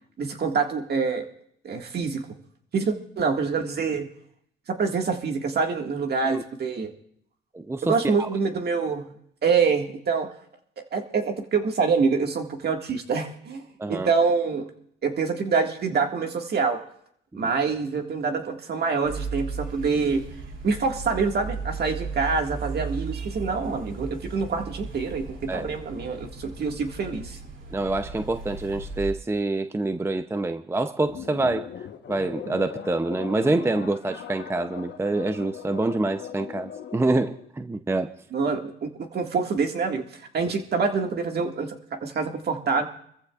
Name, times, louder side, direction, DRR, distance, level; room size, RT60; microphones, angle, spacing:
voice 1, 0.2-1.3 1.6-2.2 2.7-4.1 4.7-6.9 7.8-9.1 9.4-10.3 10.9-14.7 15.0-16.8 17.4-20.2 20.6-27.4 38.3-40.0 40.3-42.9, right 5 dB, 55° right, 1.8 m, -26 dB
voice 2, 7.5-8.3 13.8-14.1 17.3-17.5 25.5-25.7 27.7-31.7 32.1-38.1, right 2 dB, 10° right, 0.6 m, -26 dB
sound 1, 19.0-29.1, right 4 dB, 75° right, 2.7 m, -36 dB
sound 2, 31.0-37.5, left 8 dB, 65° left, 1.1 m, -39 dB
25.0 x 14.5 x 2.4 m
cardioid pair, 90°, 20 cm